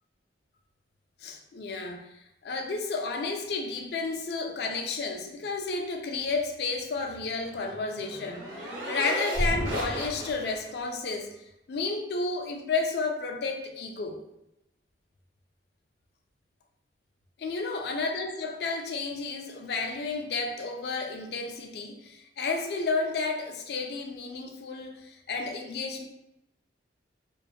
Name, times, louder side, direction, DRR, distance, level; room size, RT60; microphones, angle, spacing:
voice 1, 1.2-2.1 2.4-14.2 17.4-26.1, left 3 dB, 60° left, 2 dB, 0.4 m, -32 dB
sound 1, 7.1-10.7, equal, 75° right, 1.0 m, -33 dB
2.4 x 2.2 x 2.7 m, 0.86 s
head